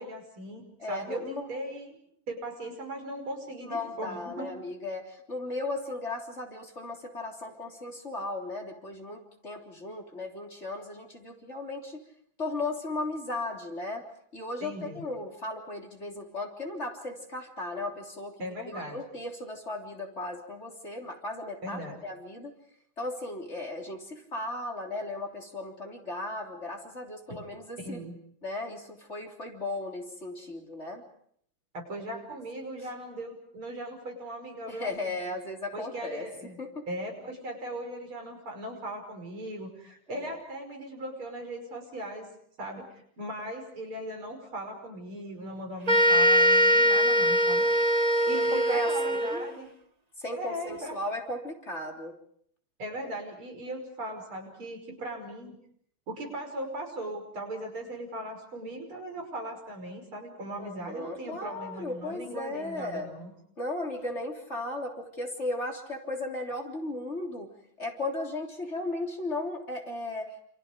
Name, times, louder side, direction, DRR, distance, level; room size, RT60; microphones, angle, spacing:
voice 1, 0.0-2.0 2.3-4.6 14.6-15.0 18.4-19.0 21.6-22.0 27.8-28.2 31.7-35.2 35.7-36.6 36.9-42.3 42.6-47.7 48.2-49.7 50.3-51.0 52.8-55.5 56.1-63.3, right 1 dB, 70° right, 3 dB, 6.5 m, -38 dB
voice 2, 0.8-1.5 3.7-12.0 12.4-14.0 14.3-22.5 23.0-28.0 28.4-31.0 34.7-36.8 40.1-40.4 48.3-49.4 50.2-52.2 60.6-63.1 63.6-67.5 67.8-70.4, left 2 dB, 30° left, 1 dB, 3.7 m, -36 dB
sound 1, 45.9-49.5, equal, 20° right, 1.3 m, -22 dB
29.0 x 28.5 x 5.2 m, 0.66 s
omnidirectional pair, 2.4 m